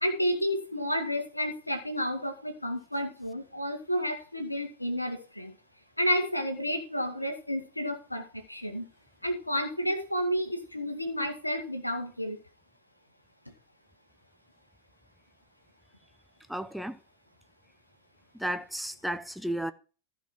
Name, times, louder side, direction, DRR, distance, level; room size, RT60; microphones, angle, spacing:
voice 1, 0.0-5.5 6.0-8.8 9.2-12.4, equal, 85° left, 2.0 m, -31 dB
voice 2, 16.5-17.0 18.4-19.7, right 1 dB, ahead, 0.7 m, -33 dB
14.5 x 5.3 x 6.0 m
figure-of-eight pair, 90°, 0 cm